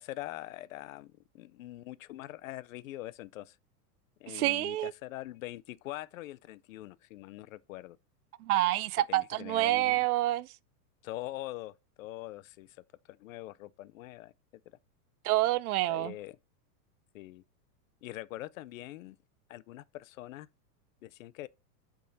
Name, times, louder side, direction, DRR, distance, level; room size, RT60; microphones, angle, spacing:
voice 1, 0.0-3.6 4.2-8.0 9.1-10.1 11.0-12.8 13.1-14.3 15.9-16.3 17.1-17.4 18.0-19.2 19.5-20.5 21.0-21.5, left 16 dB, 55° left, 0.5 m, -43 dB
voice 2, 4.3-4.9 8.4-10.5 15.2-16.1, right 16 dB, 65° right, 0.5 m, -28 dB
8.4 x 3.7 x 4.0 m
supercardioid pair, 165°, 49 cm